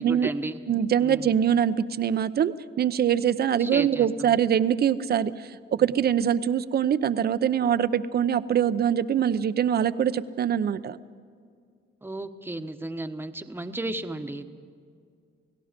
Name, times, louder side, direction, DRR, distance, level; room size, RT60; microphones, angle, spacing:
voice 1, 0.0-0.6 1.0-1.3 3.6-4.4 12.0-14.5, right 2 dB, 10° right, 8 dB, 1.2 m, -34 dB
voice 2, 0.7-11.0, right 9 dB, 55° right, 14 dB, 0.7 m, -24 dB
29.0 x 17.5 x 5.2 m, 2.2 s
cardioid pair, 90°, 20 cm